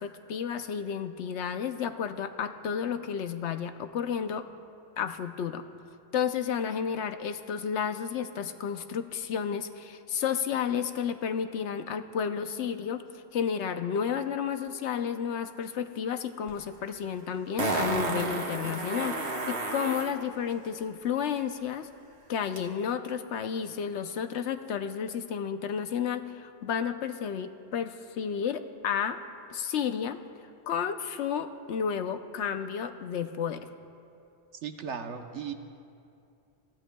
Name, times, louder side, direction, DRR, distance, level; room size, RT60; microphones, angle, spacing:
voice 1, 0.0-4.5 5.0-5.7 6.1-13.0 13.3-21.9 22.3-29.2 29.5-30.2 30.7-33.7, left 7 dB, 80° left, 9 dB, 1.0 m, -32 dB
Fart, 16.5-16.6 17.6-20.1 22.6-22.7, right 2 dB, 55° right, 1.5 m, -31 dB
voice 2, 34.6-35.5, right 7 dB, 80° right, 6 dB, 1.2 m, -36 dB
28.0 x 16.0 x 2.3 m, 2.6 s
omnidirectional pair, 1.2 m